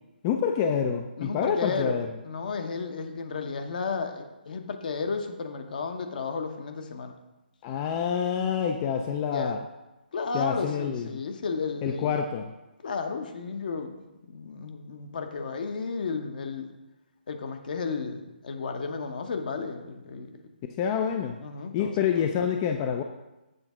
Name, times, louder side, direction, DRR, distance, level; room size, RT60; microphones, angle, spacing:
voice 1, 0.2-2.1 7.6-9.6 10.3-11.2 11.8-12.5 20.8-21.4 21.7-23.0, left 7 dB, 25° left, 5 dB, 0.3 m, -27 dB
voice 2, 1.2-2.0 2.2-7.1 9.2-9.6 10.1-12.2 12.8-13.9 14.2-16.7 17.3-20.3 21.4-21.9, left 4 dB, 55° left, 6 dB, 0.9 m, -33 dB
7.8 x 3.4 x 6.0 m, 1.0 s
figure-of-eight pair, 145°, 6 cm